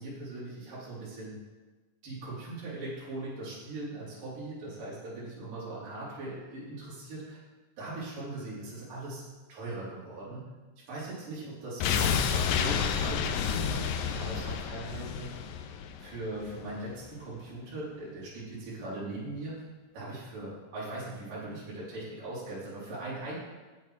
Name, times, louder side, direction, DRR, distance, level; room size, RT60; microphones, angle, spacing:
voice 1, 0.0-1.4 2.0-7.4 7.8-9.2 9.5-10.4 10.9-15.3 16.0-19.5 19.9-23.4, right 2 dB, 70° right, -9 dB, 4.6 m, -40 dB
sound 1, 11.8-16.8 17.1-17.2, left 7 dB, 80° left, 2.3 m, -30 dB
9.0 x 8.3 x 4.6 m, 1.3 s
omnidirectional pair, 4.1 m